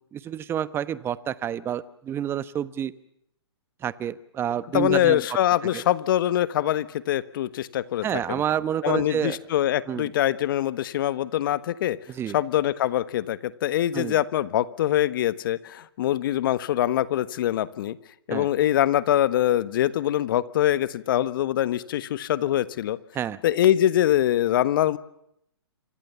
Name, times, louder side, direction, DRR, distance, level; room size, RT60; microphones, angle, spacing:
voice 1, 0.1-2.9 3.8-5.2 5.7-5.8 8.0-9.4 9.9-10.1 12.1-12.3 13.9-14.1 18.3-18.5 23.1-23.4, right 9 dB, 15° right, 16 dB, 1.0 m, -29 dB
voice 2, 4.7-8.4 8.8-12.0 12.3-18.0 18.3-23.0 23.4-25.0, left 12 dB, 50° left, 14 dB, 1.4 m, -23 dB
27.5 x 26.5 x 7.1 m, 0.75 s
hypercardioid pair, 135°, 14 cm